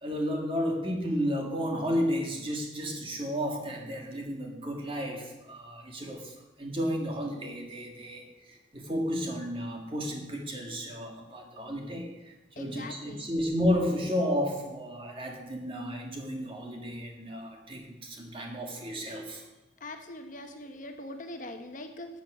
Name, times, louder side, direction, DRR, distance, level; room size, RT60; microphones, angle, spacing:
voice 1, 0.0-19.4, equal, 30° right, 1 dB, 2.0 m, -32 dB
voice 2, 12.6-13.3 19.8-22.1, left 1 dB, 45° left, 5 dB, 1.1 m, -42 dB
13.0 x 7.6 x 6.2 m, 1.0 s
head